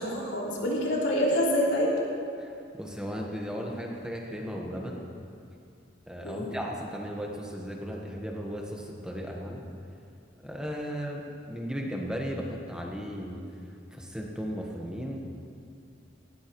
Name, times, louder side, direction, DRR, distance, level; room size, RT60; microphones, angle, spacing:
voice 1, 0.0-1.9 6.2-6.5, equal, 70° left, -4 dB, 3.4 m, -27 dB
voice 2, 2.8-5.0 6.1-9.7 10.4-13.5 13.9-15.2, equal, 5° right, -1 dB, 1.3 m, -36 dB
19.0 x 17.0 x 3.1 m, 2.4 s
head